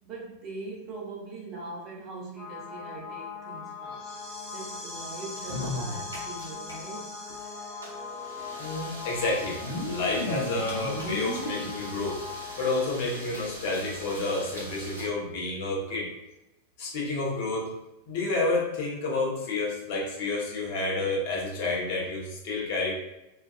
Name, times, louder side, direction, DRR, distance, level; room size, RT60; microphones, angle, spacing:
voice 1, 0.0-4.1 4.5-7.1, right 3 dB, 30° right, -3 dB, 0.7 m, -41 dB
sound 1, 2.4-12.8, left 4 dB, 10° left, 1.2 m, -40 dB
sound 2, 5.4-6.7 7.0-7.1 7.3-7.4 8.4-8.5 9.4-11.7 12.3-12.4 12.7-12.8 13.2-14.2 14.5-14.6 14.9-15.1 15.9-16.0, left 1 dB, 80° left, 0.7 m, -35 dB
voice 2, 7.5-8.0 8.6-12.2 12.6-16.1 16.8-17.7 18.1-22.9, left 2 dB, 50° left, -3 dB, 0.8 m, -30 dB
sound 3, 7.8-15.1, right 1 dB, 80° right, 0.7 m, -43 dB
2.4 x 2.4 x 2.3 m, 0.93 s
figure-of-eight pair, 90°, 0 cm